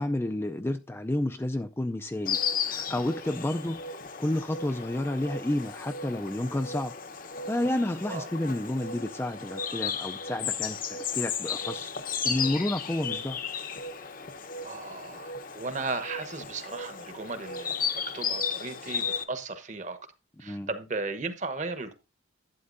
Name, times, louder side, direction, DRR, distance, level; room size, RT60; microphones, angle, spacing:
voice 1, 0.0-2.4 2.6-3.8 4.2-6.9 7.5-11.9 12.2-13.4 20.4-20.7, left 1 dB, 10° left, 0.4 m, -30 dB
Insect, 2.3-19.2, left 6 dB, 45° left, 0.8 m, -34 dB
voice 2, 14.6-17.8 18.1-20.0 20.4-21.9, right 3 dB, 40° right, 1.0 m, -35 dB
11.5 x 8.4 x 2.6 m
head